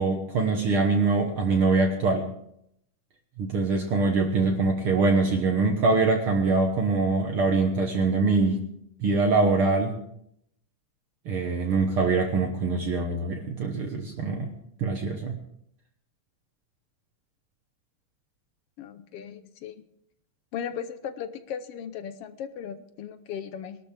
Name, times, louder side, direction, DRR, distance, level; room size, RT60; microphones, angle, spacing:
voice 1, 0.0-2.3 3.4-8.6 9.0-9.9 11.3-14.5 14.8-15.4, right 3 dB, 55° right, 2 dB, 1.8 m, -23 dB
voice 2, 18.8-19.8 20.5-23.8, left 8 dB, 65° left, 11 dB, 1.6 m, -37 dB
22.0 x 12.5 x 3.4 m, 0.72 s
omnidirectional pair, 3.3 m